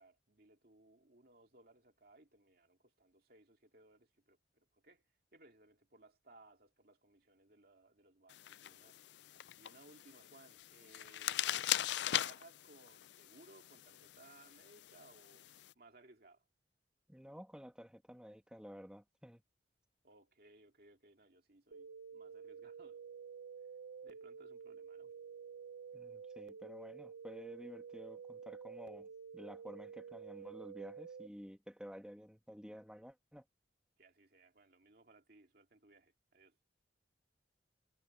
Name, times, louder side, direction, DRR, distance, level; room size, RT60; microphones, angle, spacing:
voice 1, 0.0-11.7 12.0-15.5 15.7-16.4 20.0-23.0 24.0-25.1 34.0-36.6, right 2 dB, 55° right, 2.5 m, -64 dB
sound 1, 8.3-15.7, left 12 dB, 65° left, 0.4 m, -41 dB
voice 2, 17.1-19.4 25.9-33.4, equal, 5° right, 2.4 m, -52 dB
sound 2, 21.7-31.3, right 6 dB, 80° right, 0.7 m, -50 dB
head